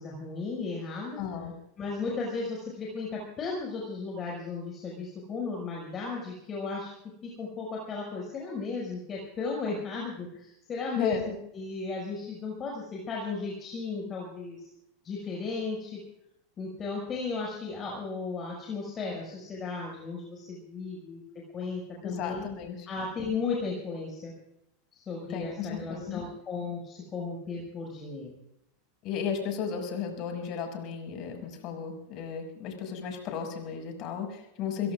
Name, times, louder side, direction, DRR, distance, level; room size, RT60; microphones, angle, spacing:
voice 1, 0.0-1.2 1.8-6.9 7.2-14.7 15.0-16.0 16.6-21.2 21.5-22.4 22.9-24.3 24.9-28.4 29.7-29.8, left 4 dB, 30° left, -2 dB, 6.0 m, -35 dB
voice 2, 1.2-1.5 11.0-11.3 22.0-22.9 25.3-26.2 29.0-34.9, left 7 dB, 50° left, 3 dB, 6.1 m, -34 dB
29.5 x 17.0 x 2.5 m, 0.81 s
hypercardioid pair, 100°, 0 cm